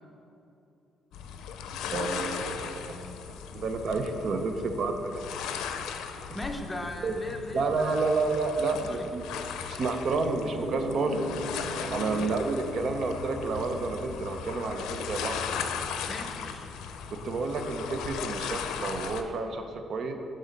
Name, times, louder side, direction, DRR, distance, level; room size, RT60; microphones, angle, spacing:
sound 1, 1.1-19.2, left 7 dB, 90° left, 0.5 m, -37 dB
voice 1, 1.9-2.9 3.5-5.2 7.0-7.1 7.5-9.2 9.7-11.2 11.9-15.4 17.1-20.1, right 3 dB, 60° right, 6 dB, 0.7 m, -30 dB
voice 2, 6.3-8.0 8.8-9.1 12.1-12.3 16.1-16.7, left 1 dB, 20° left, 3 dB, 0.8 m, -38 dB
sound 2, 10.4-15.7, right 1 dB, 80° right, 1.1 m, -40 dB
10.5 x 3.8 x 5.2 m, 2.8 s
cardioid pair, 90°, 0 cm